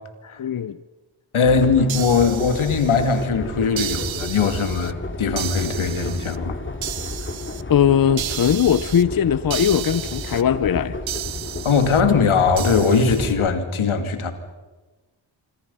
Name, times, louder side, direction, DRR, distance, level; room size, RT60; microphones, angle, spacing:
voice 1, 0.4-0.8 7.7-11.0, left 8 dB, 45° left, 15 dB, 0.7 m, -19 dB
voice 2, 1.3-6.6 11.6-14.3, left 5 dB, 85° left, 8 dB, 2.5 m, -20 dB
sound 1, 1.4-13.5, left 2 dB, 25° left, 2.7 m, -32 dB
sound 2, 1.9-3.2 3.8-4.9 5.4-6.4 6.8-7.6 8.2-9.0 9.5-10.4 11.1-12.0 12.6-13.3, right 12 dB, 70° right, 0.8 m, -33 dB
27.0 x 25.0 x 5.6 m, 1.2 s
wide cardioid pair, 90°, 48 cm